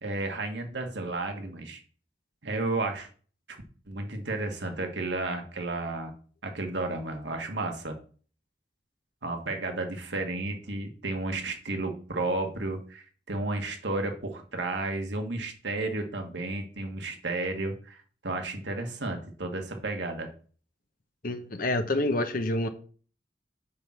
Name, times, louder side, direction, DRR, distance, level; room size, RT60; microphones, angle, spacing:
voice 1, 0.0-1.8 2.4-3.1 3.5-3.6 3.9-6.1 6.4-8.0 9.2-18.0 18.2-20.3, right 2 dB, 85° right, 1.6 m, -32 dB
voice 2, 21.2-22.7, left 1 dB, 55° left, 1.0 m, -27 dB
8.4 x 3.7 x 6.0 m
head